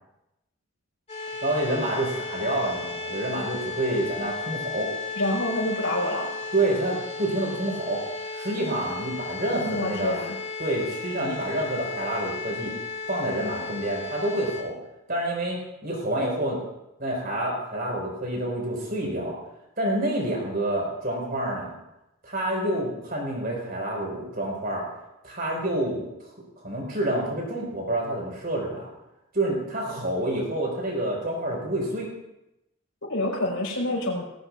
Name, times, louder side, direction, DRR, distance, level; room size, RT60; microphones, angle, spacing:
sound 1, 1.1-14.6, left 4 dB, 30° left, 6.1 m, -35 dB
voice 1, 1.4-4.9 6.5-8.0 8.3-10.2 10.6-12.7 13.1-14.8 15.1-16.6 17.0-19.4 19.8-21.8 22.2-24.9 25.2-28.9 29.3-32.1, right 1 dB, 45° right, -1 dB, 5.1 m, -28 dB
voice 2, 5.2-6.3 9.6-10.3 33.0-34.2, left 1 dB, 85° left, -1 dB, 4.9 m, -27 dB
19.0 x 17.0 x 2.5 m, 0.90 s
head